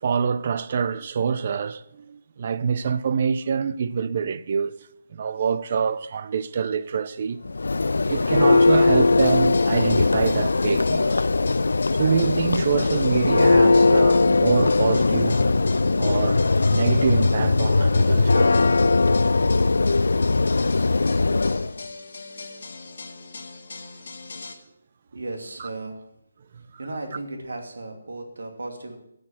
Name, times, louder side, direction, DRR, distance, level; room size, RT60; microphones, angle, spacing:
voice 1, 0.0-4.8 5.1-7.4 8.1-11.3 11.9-15.4 16.0-16.4 16.7-18.6, right 6 dB, 35° right, 0.5 m, -25 dB
Church bell, 7.5-21.7, left 3 dB, 85° left, 0.3 m, -19 dB
sound 1, 9.2-24.5, left 3 dB, 60° left, 1.8 m, -40 dB
voice 2, 25.1-26.0 26.6-29.0, right 2 dB, 80° right, 2.7 m, -35 dB
12.0 x 6.5 x 7.3 m
hypercardioid pair, 175°, 0 cm